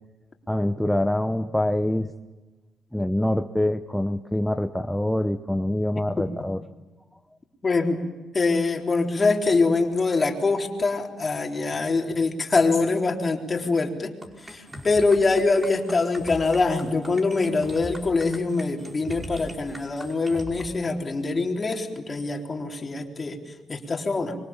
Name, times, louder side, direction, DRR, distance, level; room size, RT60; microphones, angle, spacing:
voice 1, 0.5-2.1 2.9-6.6, left 1 dB, 5° left, 7 dB, 0.9 m, -25 dB
voice 2, 7.6-8.0 8.3-14.1 14.4-24.4, left 3 dB, 30° left, 2 dB, 3.8 m, -24 dB
sound 1, 14.2-20.6, equal, 20° right, 5.0 m, -41 dB
25.5 x 23.5 x 7.3 m, 1.2 s
cardioid pair, 90°, 0 cm